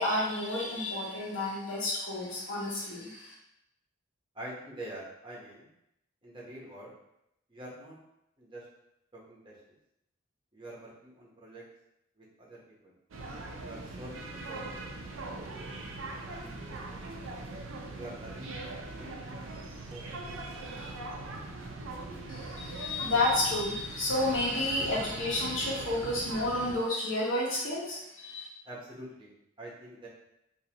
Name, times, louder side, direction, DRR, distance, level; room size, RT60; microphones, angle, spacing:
voice 1, 0.0-3.3 22.3-28.5, left 1 dB, 75° left, -4 dB, 1.1 m, -31 dB
voice 2, 4.3-5.7 6.2-6.9 7.5-8.0 8.4-8.7 9.1-9.5 10.5-11.6 12.2-12.9 13.6-14.8 16.3-17.0 17.9-18.6 18.9-19.4 19.9-20.4 28.6-29.3 29.6-30.1, right 1 dB, 25° right, -5 dB, 1.0 m, -46 dB
sound 1, 13.1-26.7, right 2 dB, 90° right, 0.5 m, -41 dB
3.7 x 2.7 x 2.9 m, 0.82 s
head